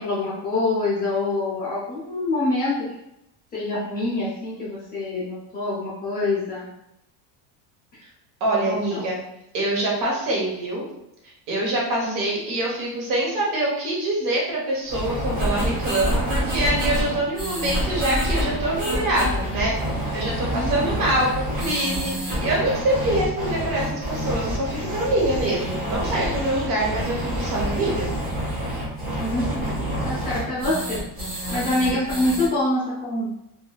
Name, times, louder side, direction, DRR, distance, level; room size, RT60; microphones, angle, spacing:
voice 1, 0.0-2.9 3.5-6.7 8.7-9.0 12.0-12.4 20.4-21.0 29.2-29.8 30.0-31.0 31.5-33.3, left 2 dB, 20° left, -7 dB, 0.6 m, -26 dB
voice 2, 8.4-9.2 9.5-10.8 11.5-28.1, right 1 dB, 45° right, -3 dB, 1.1 m, -25 dB
sound 1, 14.9-32.5, equal, 20° right, 0.9 m, -27 dB
3.3 x 2.6 x 2.3 m, 0.83 s
cardioid pair, 150°, 47 cm